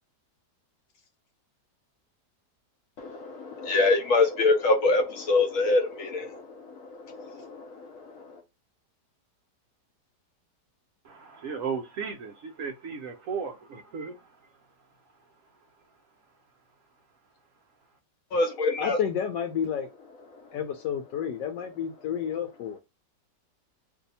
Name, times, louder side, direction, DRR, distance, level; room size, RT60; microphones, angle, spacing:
voice 1, 3.0-8.0 18.3-19.0, left 3 dB, 65° left, 0.8 m, -25 dB
voice 2, 11.0-14.4, right 6 dB, 70° right, 0.7 m, -35 dB
voice 3, 18.8-19.9 20.5-22.8, left 8 dB, 80° left, 1.2 m, -30 dB
2.7 x 2.6 x 4.0 m
omnidirectional pair, 1.9 m